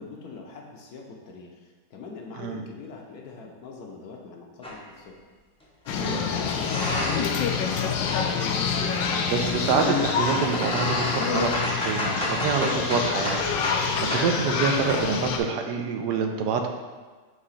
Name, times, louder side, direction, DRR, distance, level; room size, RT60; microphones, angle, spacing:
voice 1, 0.0-1.5 1.9-5.2 6.1-8.1, left 4 dB, 65° left, 0 dB, 1.2 m, -41 dB
sound 1, 4.6-4.8 5.9-7.4 7.7-13.8 14.1-14.3, equal, 5° left, 0.4 m, -32 dB
sound 2, 5.9-15.4, left 6 dB, 80° left, 1.3 m, -27 dB
voice 2, 8.8-16.7, right 5 dB, 75° right, 4 dB, 1.2 m, -27 dB
4.9 x 3.7 x 5.6 m, 1.4 s
omnidirectional pair, 2.0 m